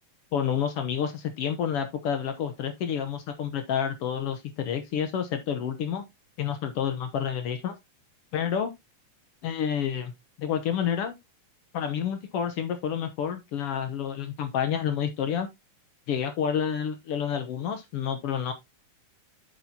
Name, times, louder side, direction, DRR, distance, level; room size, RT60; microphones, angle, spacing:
voice 1, 0.3-6.0 6.4-7.7 8.3-8.7 9.4-10.1 10.4-11.2 11.7-15.5 16.1-18.5, left 8 dB, 75° left, 1.4 m, -29 dB
7.7 x 7.5 x 2.8 m
omnidirectional pair, 3.7 m